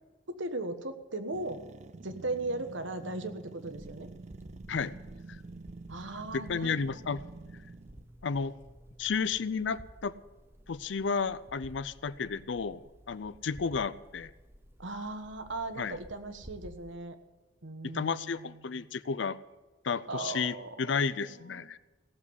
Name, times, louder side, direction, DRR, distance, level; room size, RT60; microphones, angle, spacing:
voice 1, 0.3-1.6 2.0-4.1 5.9-6.8 14.8-17.1 17.6-18.7 20.1-20.9 21.2-21.7, right 2 dB, 85° right, 9 dB, 1.4 m, -38 dB
sound 1, 1.3-8.1, right 3 dB, 40° right, 0.4 m, -48 dB
sound 2, 3.7-17.0, equal, 10° right, 0.9 m, -53 dB
voice 2, 6.5-7.2 8.2-8.5 9.0-10.1 10.7-14.3 15.8-16.0 17.8-19.4 19.8-21.8, left 5 dB, 70° left, 15 dB, 0.5 m, -32 dB
17.0 x 7.5 x 9.5 m, 1.2 s
head